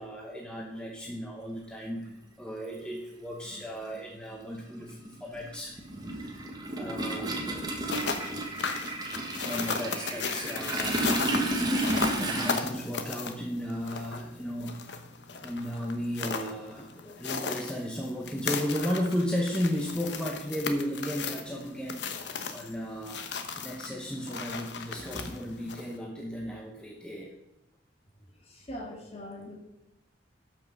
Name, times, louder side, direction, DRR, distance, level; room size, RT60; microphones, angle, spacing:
voice 1, 0.0-5.8 6.1-7.6 9.3-11.1 12.1-14.9 15.4-27.3, equal, 5° left, -1 dB, 0.9 m, -35 dB
Toilet flush, 2.1-2.2 3.5-3.6 3.9-12.6, right 1 dB, 20° right, 1.4 m, -32 dB
sound 1, 7.7-26.0, left 5 dB, 65° left, 1.0 m, -36 dB
voice 2, 28.4-29.6, left 1 dB, 30° left, 0 dB, 2.2 m, -41 dB
12.5 x 5.9 x 5.4 m, 0.91 s
head